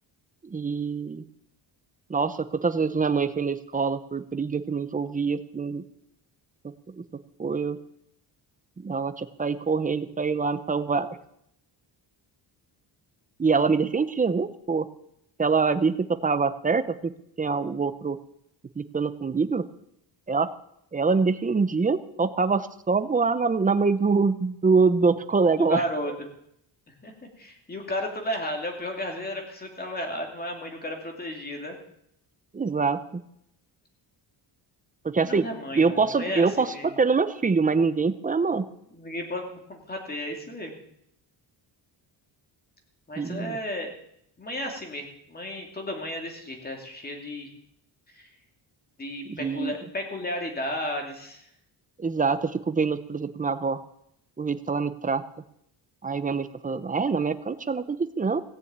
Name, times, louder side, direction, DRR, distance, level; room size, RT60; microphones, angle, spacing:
voice 1, 0.4-1.2 2.1-5.8 6.6-6.7 7.4-7.8 8.8-11.1 13.4-14.9 15.4-17.1 17.4-18.2 18.8-19.7 20.3-20.5 20.9-25.8 32.5-33.0 35.0-35.5 35.7-38.7 43.2-43.6 49.3-49.7 52.0-53.8 54.4-55.2 56.0-58.4, right 4 dB, 20° right, 12 dB, 0.6 m, -25 dB
voice 2, 25.6-26.1 27.0-31.8 35.3-36.9 38.9-40.7 43.1-43.9 44.4-47.5 48.1-48.3 49.0-51.5, left 1 dB, 20° left, 2 dB, 2.6 m, -33 dB
17.5 x 6.9 x 8.8 m, 0.74 s
wide cardioid pair, 170°, 46 cm